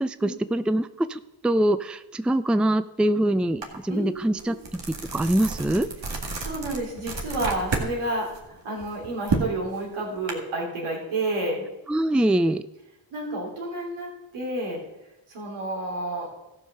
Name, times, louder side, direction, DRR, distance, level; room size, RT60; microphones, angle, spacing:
voice 1, 0.0-4.5 5.1-5.9 11.9-12.6, right 1 dB, ahead, 12 dB, 0.4 m, -23 dB
sound 1, 3.6-3.8 4.2-7.9 8.3-10.3, right 3 dB, 60° right, 2.1 m, -30 dB
voice 2, 3.9-4.5 6.4-11.7 13.1-14.8 15.3-16.3, right 2 dB, 85° right, -2 dB, 3.1 m, -30 dB
14.0 x 5.4 x 6.6 m, 0.96 s
supercardioid pair, 45°, 48 cm